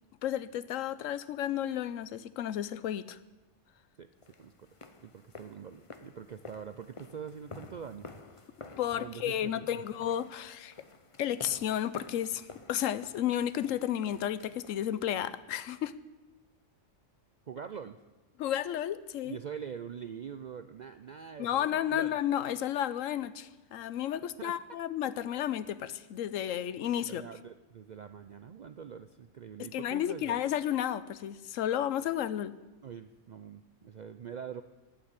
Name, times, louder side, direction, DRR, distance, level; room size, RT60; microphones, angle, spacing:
voice 1, 0.2-3.2 8.8-10.7 11.2-15.9 18.4-19.4 21.4-27.2 29.6-32.5, left 11 dB, 90° left, 15 dB, 1.0 m, -32 dB
sound 1, 4.2-15.3, left 3 dB, 30° left, 0.8 m, -51 dB
voice 2, 4.4-4.7 5.0-8.5 8.9-9.9 17.5-18.0 19.2-22.2 24.4-24.6 27.0-30.4 32.8-34.6, right 7 dB, 65° right, 10 dB, 0.4 m, -44 dB
15.5 x 6.0 x 9.7 m, 1.1 s
omnidirectional pair, 1.3 m